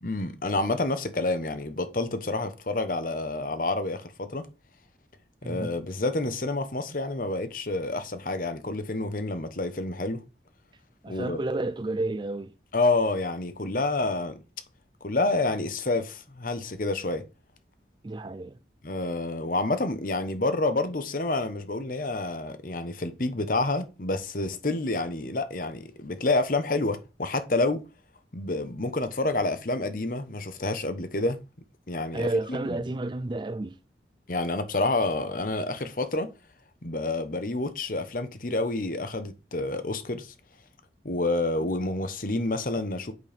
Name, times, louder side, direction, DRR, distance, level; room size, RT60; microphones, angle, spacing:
voice 1, 0.0-4.5 5.4-10.2 11.1-11.4 12.7-14.4 15.0-17.2 18.8-27.9 28.3-31.4 31.9-32.8 34.3-36.3 36.8-40.3 41.0-43.1, left 2 dB, 50° left, 1.1 m, -28 dB
voice 2, 5.4-5.7 11.0-12.5 18.0-18.6 32.1-33.8, right 2 dB, 25° right, 0.4 m, -31 dB
8.2 x 4.6 x 5.2 m
head